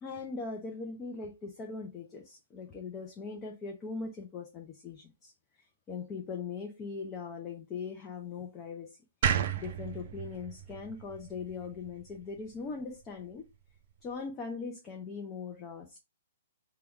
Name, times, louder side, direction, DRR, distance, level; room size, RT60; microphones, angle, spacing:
voice 1, 0.0-9.0 9.6-13.4 14.0-16.0, left 4 dB, 20° left, 0.5 m, -40 dB
sound 1, 9.2-12.4, right 8 dB, 45° right, 0.4 m, -33 dB
3.5 x 2.3 x 3.0 m
hypercardioid pair, 165°, 0 cm